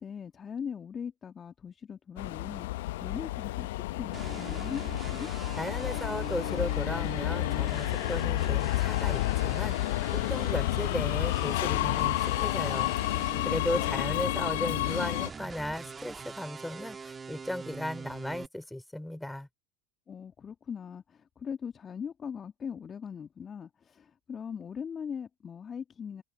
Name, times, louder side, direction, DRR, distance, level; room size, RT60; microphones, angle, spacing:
voice 1, 0.0-5.3 20.1-26.2, left 7 dB, 30° left, 1.6 m, -40 dB
Subway metro underground, 2.2-15.3, left 18 dB, 65° left, 1.0 m, -30 dB
sound 1, 4.1-18.5, right 5 dB, 20° right, 1.6 m, -43 dB
voice 2, 5.6-12.9 13.4-19.5, left 1 dB, 5° left, 4.4 m, -36 dB
figure-of-eight pair, 80°, 0 cm